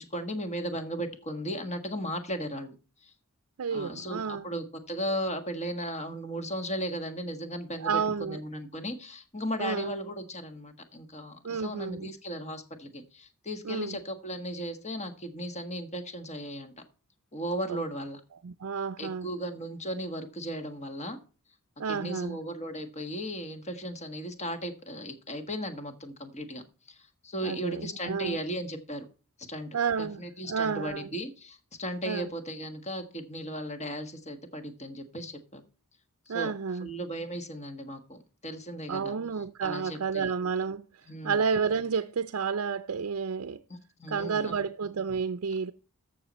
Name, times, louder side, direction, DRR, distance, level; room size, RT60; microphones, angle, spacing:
voice 1, 0.0-2.7 3.0-3.1 3.7-7.9 8.2-16.7 17.3-18.2 19.0-21.2 21.9-27.0 27.2-29.0 29.5-29.7 30.0-35.6 36.3-36.5 36.8-39.2 39.6-40.3 41.1-41.4 44.0-44.5, equal, 30° left, 1.6 m, -36 dB
voice 2, 3.6-4.5 7.8-8.4 9.6-9.9 11.4-12.1 13.6-14.0 17.7-17.8 18.4-19.3 21.8-22.4 27.4-28.4 29.7-31.1 32.0-32.3 36.3-36.9 38.9-43.6 44.1-45.7, right 6 dB, 70° right, 0.5 m, -31 dB
13.5 x 6.7 x 4.2 m
head